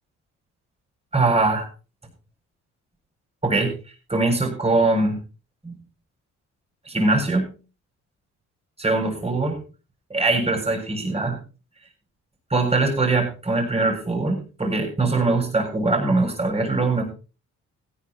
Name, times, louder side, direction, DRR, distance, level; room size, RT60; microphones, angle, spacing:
voice 1, 1.1-1.7 3.4-3.8 4.1-5.2 5.6-5.7 6.9-7.5 8.8-9.6 10.1-11.4 12.5-17.0, right 3 dB, 20° right, 2 dB, 7.6 m, -22 dB
16.5 x 10.5 x 4.3 m, 0.35 s
cardioid pair, 90°, 30 cm